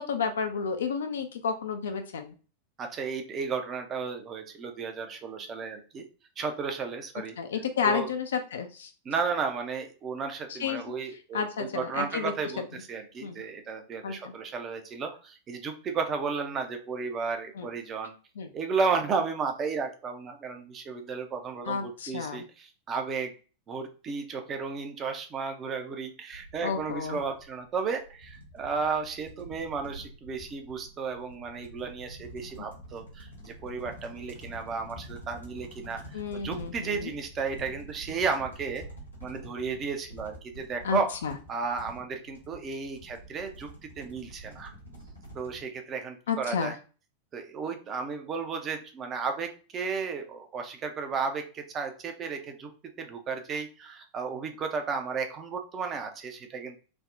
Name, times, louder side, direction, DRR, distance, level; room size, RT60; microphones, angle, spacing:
voice 1, 0.0-2.3 7.4-8.9 10.5-10.8 11.3-12.3 13.2-13.4 14.0-14.3 17.6-17.7 18.4-18.5 21.7-22.4 26.6-27.2 36.1-37.1 40.8-41.3 46.3-46.7, left 6 dB, 65° left, 6 dB, 0.3 m, -31 dB
voice 2, 2.8-6.0 6.4-7.4 7.8-8.1 9.0-18.1 18.5-23.3 23.7-38.8 39.2-41.1 41.5-43.7 44.0-44.7 45.3-46.7 47.3-52.7 53.0-56.8, right 5 dB, 25° right, 6 dB, 0.5 m, -33 dB
sound 1, 26.3-45.6, right 1 dB, 85° left, 1.1 m, -47 dB
3.3 x 2.1 x 2.4 m, 0.36 s
figure-of-eight pair, 90°, 0 cm